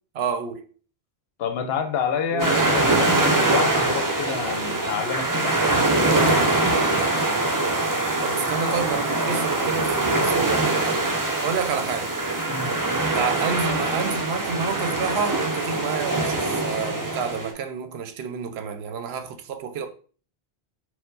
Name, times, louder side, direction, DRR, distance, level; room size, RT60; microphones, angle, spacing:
voice 1, 0.1-0.7 2.3-2.7 8.2-11.1 11.4-12.1 13.1-19.9, right 6 dB, 75° right, 0.8 m, -29 dB
voice 2, 1.4-6.4 12.5-12.8, left 7 dB, 75° left, 0.8 m, -29 dB
sound 1, 2.4-17.5, right 2 dB, 25° right, 0.4 m, -23 dB
4.4 x 2.1 x 3.8 m
omnidirectional pair, 1.1 m